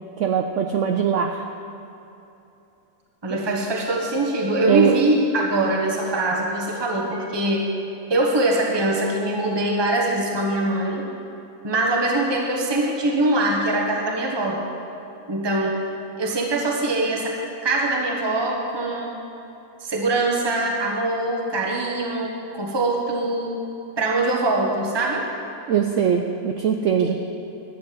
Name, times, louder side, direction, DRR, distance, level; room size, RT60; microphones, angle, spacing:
voice 1, 0.2-1.4 3.3-3.4 4.7-5.0 25.7-27.2, right 8 dB, 65° right, 5 dB, 0.8 m, -21 dB
voice 2, 3.2-7.7 8.1-11.0 11.6-14.6 15.3-15.8 16.2-17.4 17.6-19.1 19.8-23.6 24.0-25.3 27.0-27.1, right 2 dB, 15° right, 0 dB, 1.2 m, -23 dB
11.5 x 7.6 x 7.6 m, 2.9 s
omnidirectional pair, 1.7 m